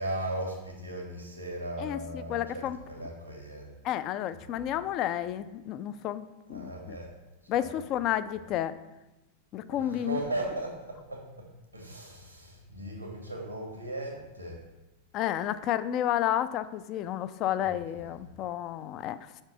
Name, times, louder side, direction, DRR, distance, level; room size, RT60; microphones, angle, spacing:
voice 1, 0.0-3.7 4.4-4.6 6.5-7.1 7.5-7.7 9.7-11.5 11.7-14.6 17.6-17.7 17.9-18.1, right 1 dB, 85° right, 0 dB, 1.7 m, -37 dB
voice 2, 1.8-2.8 3.8-7.0 7.5-8.7 9.5-10.2 15.1-19.3, left 11 dB, 35° left, 13 dB, 0.3 m, -31 dB
5.8 x 4.4 x 5.6 m, 1.0 s
figure-of-eight pair, 90°, 0 cm